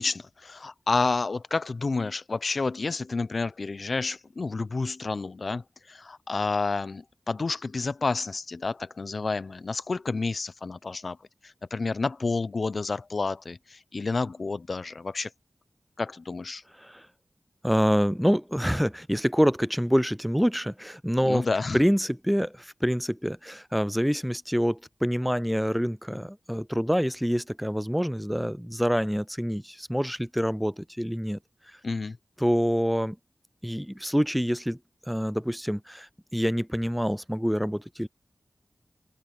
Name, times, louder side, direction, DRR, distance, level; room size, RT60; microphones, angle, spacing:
voice 1, 0.0-11.2 11.4-15.3 16.0-16.6 21.2-21.8 31.8-32.2, left 3 dB, 60° left, 0.6 m, -30 dB
voice 2, 17.6-21.5 21.7-31.4 32.4-33.2 33.6-34.8 35.1-38.1, equal, ahead, 0.3 m, -26 dB
open air
wide cardioid pair, 60°, 0 cm